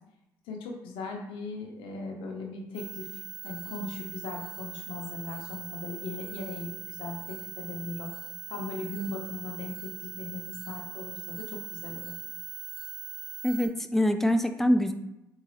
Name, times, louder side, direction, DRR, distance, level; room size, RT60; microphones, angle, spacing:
voice 1, 0.5-8.1 8.5-12.1, left 3 dB, 80° left, 1 dB, 0.6 m, -38 dB
sound 1, 2.7-13.7, right 9 dB, 45° right, 1.0 m, -41 dB
voice 2, 13.4-14.9, left 1 dB, 5° left, 8 dB, 0.4 m, -24 dB
4.0 x 2.3 x 3.1 m, 0.91 s
supercardioid pair, 65°, 9 cm